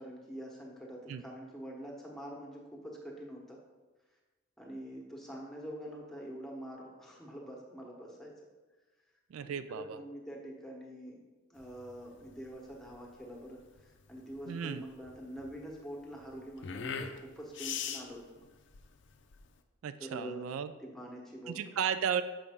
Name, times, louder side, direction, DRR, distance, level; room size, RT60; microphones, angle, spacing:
voice 1, 0.0-3.6 4.6-8.3 9.4-11.2 11.5-18.5 20.0-20.5 20.8-21.6, equal, ahead, -2 dB, 1.0 m, -45 dB
voice 2, 9.3-10.0 14.5-14.8 19.8-20.7 21.5-22.2, right 7 dB, 85° right, 11 dB, 0.3 m, -34 dB
sound 1, 11.6-19.6, left 7 dB, 60° left, 0.5 m, -43 dB
6.9 x 5.2 x 3.6 m, 1.2 s
head